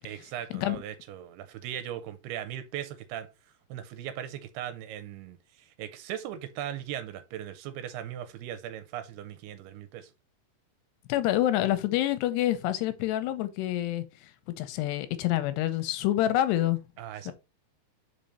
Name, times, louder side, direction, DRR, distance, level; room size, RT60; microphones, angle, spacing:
voice 1, 0.0-3.3 3.7-10.1 17.0-17.3, right 11 dB, 85° right, 2.5 m, -38 dB
voice 2, 11.1-14.0 14.6-16.8 17.3-17.4, left 13 dB, 90° left, 2.8 m, -27 dB
5.3 x 5.2 x 4.3 m
omnidirectional pair, 4.9 m